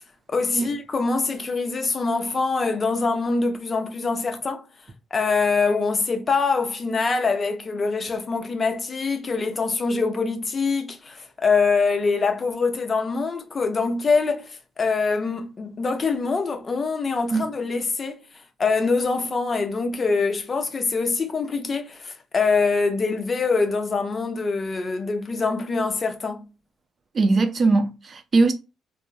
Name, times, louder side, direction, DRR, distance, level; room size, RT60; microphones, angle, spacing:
voice 1, 0.3-4.7 5.1-18.2 18.6-26.4, left 4 dB, 35° left, 0.6 m, -24 dB
voice 2, 27.1-28.5, right 3 dB, 45° right, 0.5 m, -20 dB
3.4 x 2.0 x 2.5 m
cardioid pair, 90°, 0 cm